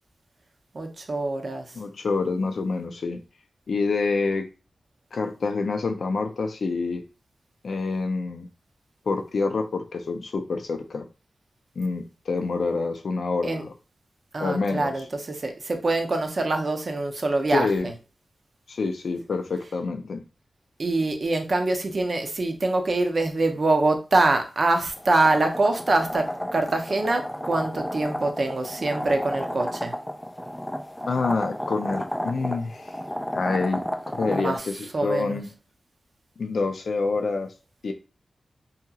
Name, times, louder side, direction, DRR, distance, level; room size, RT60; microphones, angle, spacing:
voice 1, 0.7-1.6 13.4-13.6 14.3-17.9 20.8-29.9 34.3-34.6 34.9-35.4, right 2 dB, 50° right, 5 dB, 0.5 m, -24 dB
voice 2, 1.8-3.2 3.7-4.5 5.1-7.0 7.6-8.5 9.1-11.1 11.8-13.7 14.4-14.9 17.5-17.9 18.7-20.2 31.1-32.8 33.3-33.8 34.1-35.5 36.4-37.5 37.8-37.9, left 4 dB, 80° left, 6 dB, 0.4 m, -27 dB
sound 1, 24.9-34.6, equal, 5° left, 0.3 m, -32 dB
2.8 x 2.8 x 2.3 m, 0.32 s
wide cardioid pair, 90°, 0 cm